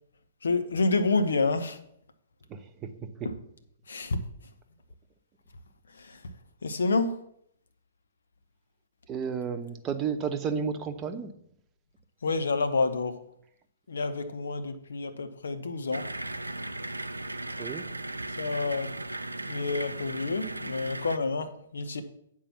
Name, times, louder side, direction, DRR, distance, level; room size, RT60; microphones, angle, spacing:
voice 1, 0.4-1.8 3.2-3.3 3.9-4.2 5.9-6.2 6.6-7.2 12.2-13.1 13.9-16.1 18.4-18.9 19.4-22.0, left 3 dB, 65° left, 8 dB, 1.1 m, -28 dB
voice 2, 2.5-2.9 9.1-11.3 17.6-17.8, right 6 dB, 25° right, 7 dB, 0.9 m, -32 dB
sound 1, 15.9-21.2, right 2 dB, 85° right, 0.5 m, -37 dB
8.8 x 4.7 x 7.1 m, 0.70 s
figure-of-eight pair, 115°, 0 cm